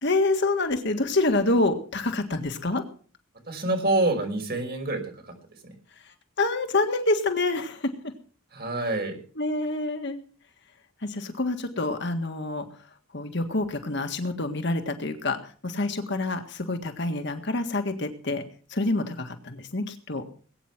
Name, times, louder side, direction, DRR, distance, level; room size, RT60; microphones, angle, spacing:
voice 1, 0.0-2.8 6.0-8.1 9.4-10.2 11.0-12.7 13.1-18.4 18.7-20.2, left 2 dB, 55° left, 6 dB, 1.7 m, -27 dB
voice 2, 3.5-5.3 5.6-5.7 8.5-9.2, right 2 dB, 50° right, 5 dB, 5.3 m, -27 dB
21.0 x 9.3 x 6.0 m, 0.43 s
head